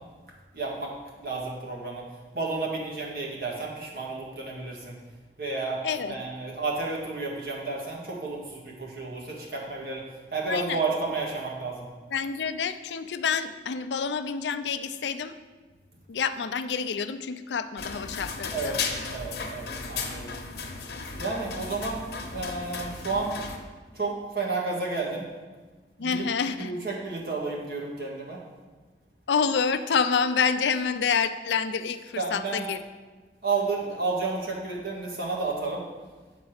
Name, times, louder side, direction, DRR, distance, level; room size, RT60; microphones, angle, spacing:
voice 1, 0.5-0.9 1.2-2.0 2.3-5.0 5.4-5.8 6.1-10.1 10.3-11.9 18.5-18.8 19.1-20.3 21.2-22.0 22.3-23.3 23.9-25.3 26.0-26.3 26.5-28.4 32.2-32.7 33.4-35.8, right 3 dB, 55° right, -2 dB, 1.7 m, -31 dB
voice 2, 5.8-6.3 10.5-10.8 12.1-15.4 16.1-18.8 26.0-26.7 29.3-32.8, left 6 dB, 85° left, 11 dB, 0.5 m, -28 dB
sound 1, 17.8-23.6, left 4 dB, 70° left, 1.0 m, -35 dB
9.0 x 4.0 x 6.5 m, 1.3 s
head